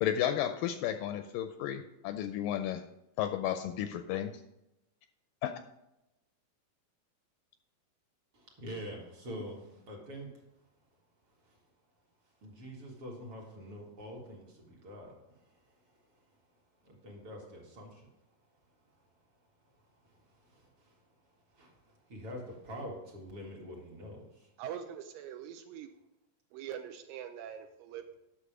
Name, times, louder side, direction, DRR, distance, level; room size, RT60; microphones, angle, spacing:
voice 1, 0.0-2.8 3.2-4.4 5.4-5.5, left 11 dB, 80° left, 8 dB, 2.0 m, -33 dB
voice 2, 8.3-10.3 11.4-11.6 12.4-16.0 16.8-18.1 20.0-21.0 21.5-24.5, equal, 45° right, -1 dB, 2.3 m, -46 dB
voice 3, 24.6-25.9 26.5-28.2, right 9 dB, 80° right, 7 dB, 2.2 m, -43 dB
10.0 x 6.5 x 4.9 m, 0.90 s
omnidirectional pair, 4.3 m